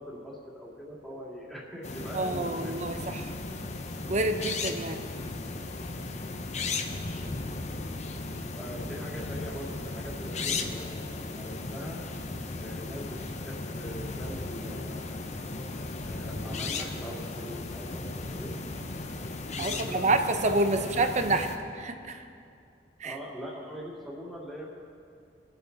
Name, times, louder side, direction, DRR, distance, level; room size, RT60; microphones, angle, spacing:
voice 1, 0.0-2.9 8.6-12.0 12.6-13.2 13.4-15.1 16.0-18.6 19.4-20.6 20.9-21.1 23.0-24.7, equal, ahead, -5 dB, 2.4 m, -42 dB
sound 1, 1.8-21.6, left 3 dB, 40° left, 0.7 m, -36 dB
voice 2, 2.1-3.3 4.1-5.0 19.6-21.5 21.7-22.2 23.0-23.1, right 2 dB, 40° right, 7 dB, 0.8 m, -28 dB
22.0 x 8.0 x 4.0 m, 2.4 s
head